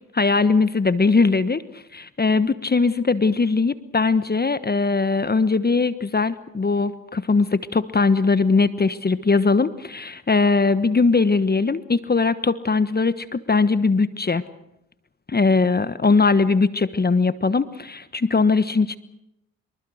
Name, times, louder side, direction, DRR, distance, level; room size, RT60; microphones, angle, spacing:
voice 1, 0.1-1.6 1.9-14.5 15.3-19.0, left 4 dB, 30° left, 14 dB, 1.2 m, -20 dB
24.0 x 23.0 x 6.5 m, 0.83 s
supercardioid pair, 50°, 32 cm